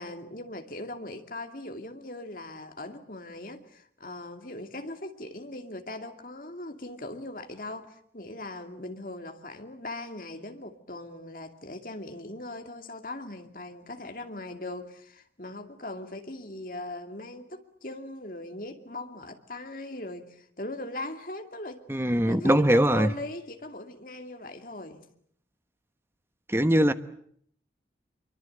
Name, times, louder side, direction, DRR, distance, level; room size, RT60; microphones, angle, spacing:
voice 1, 0.0-25.1, left 2 dB, 50° left, 2.5 m, -40 dB
voice 2, 21.9-23.1 26.5-26.9, equal, 15° right, 1.0 m, -21 dB
26.5 x 23.5 x 7.9 m
head